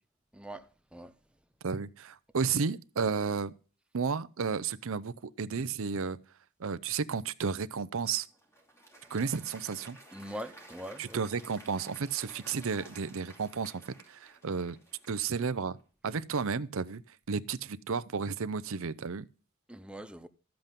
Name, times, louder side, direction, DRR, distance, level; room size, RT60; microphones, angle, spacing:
voice 1, 0.3-1.1 10.1-11.3 19.7-20.3, equal, 5° right, 0.7 m, -43 dB
voice 2, 1.6-3.5 3.9-6.2 6.6-8.3 9.1-10.0 11.0-14.8 15.1-15.8 16.0-17.0 17.3-19.3, right 5 dB, 70° right, 0.6 m, -32 dB
Applause, 8.3-15.6, right 1 dB, 15° left, 2.8 m, -54 dB
13.0 x 7.8 x 5.3 m
head